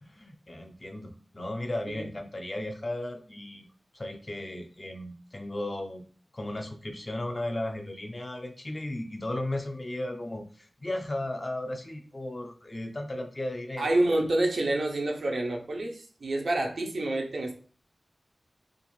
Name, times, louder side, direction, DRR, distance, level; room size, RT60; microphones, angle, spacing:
voice 1, 0.0-3.6 3.9-6.0 6.3-14.1, left 1 dB, 30° left, 4 dB, 0.5 m, -35 dB
voice 2, 13.8-17.6, right 2 dB, 70° right, 2 dB, 0.6 m, -28 dB
2.4 x 2.4 x 3.0 m, 0.42 s
wide cardioid pair, 85°, 0 cm